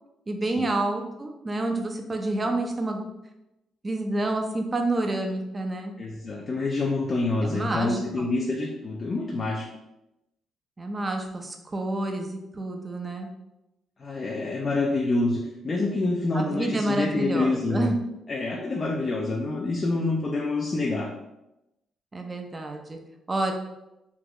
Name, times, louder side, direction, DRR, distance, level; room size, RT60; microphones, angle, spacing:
voice 1, 0.3-3.0 3.8-5.9 7.4-8.3 10.8-13.3 16.3-18.0 22.1-23.0 23.3-23.5, right 2 dB, 25° right, 3 dB, 0.5 m, -28 dB
voice 2, 6.0-9.7 14.0-17.9 18.3-21.1, left 2 dB, 40° left, -1 dB, 0.4 m, -27 dB
3.6 x 2.3 x 3.0 m, 0.91 s
cardioid pair, 90°, 0 cm